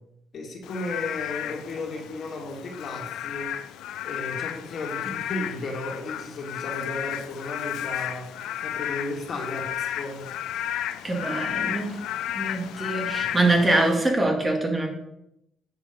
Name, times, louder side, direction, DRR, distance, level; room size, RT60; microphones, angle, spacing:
voice 1, 0.3-3.5 4.0-8.3 8.6-10.2, left 2 dB, 55° left, 1 dB, 2.3 m, -34 dB
Frog / Rain, 0.6-14.1, left 11 dB, 90° left, 0.5 m, -33 dB
voice 2, 11.0-12.0 12.3-14.9, right 2 dB, 20° right, 1 dB, 2.3 m, -24 dB
8.7 x 6.1 x 5.4 m, 0.83 s
cardioid pair, 90°, 0 cm